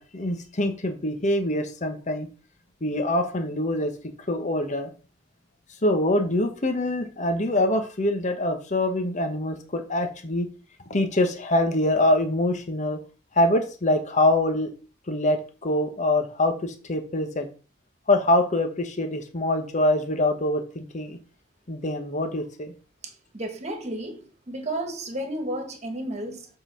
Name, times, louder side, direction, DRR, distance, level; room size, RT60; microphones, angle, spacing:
voice 1, 0.0-2.3 2.8-3.9 4.3-4.9 5.8-10.5 10.9-13.0 13.3-14.7 15.1-17.5 18.1-21.2 21.7-22.7, left 1 dB, 40° left, 1.1 m, -24 dB
voice 2, 23.0-26.5, right 1 dB, 35° right, 1.7 m, -33 dB
7.7 x 3.9 x 5.6 m
head